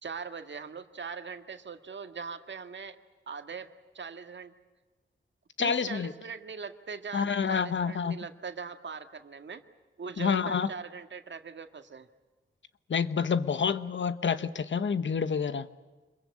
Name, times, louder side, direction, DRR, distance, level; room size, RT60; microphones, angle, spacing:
voice 1, 0.0-3.0 3.3-4.5 5.6-9.6 10.0-12.1, right 5 dB, 65° right, 7 dB, 1.8 m, -41 dB
voice 2, 5.6-6.1 7.1-8.2 10.2-10.7 12.9-15.7, left 6 dB, 65° left, 13 dB, 1.1 m, -28 dB
26.0 x 22.0 x 8.5 m, 1.3 s
wide cardioid pair, 80°, 20 cm